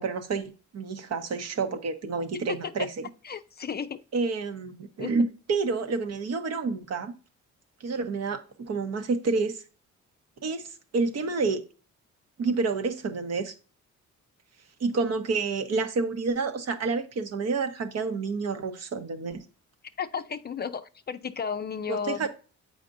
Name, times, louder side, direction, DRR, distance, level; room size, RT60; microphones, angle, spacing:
voice 1, 0.0-2.9 4.1-7.1 7.8-9.6 10.4-11.6 12.4-13.5 14.8-19.4 21.9-22.3, right 4 dB, 55° right, 1.0 m, -29 dB
voice 2, 2.5-2.9 3.2-4.0 5.0-5.2 20.0-22.3, left 6 dB, 35° left, 0.5 m, -33 dB
7.3 x 5.0 x 2.6 m
cardioid pair, 90°, 30 cm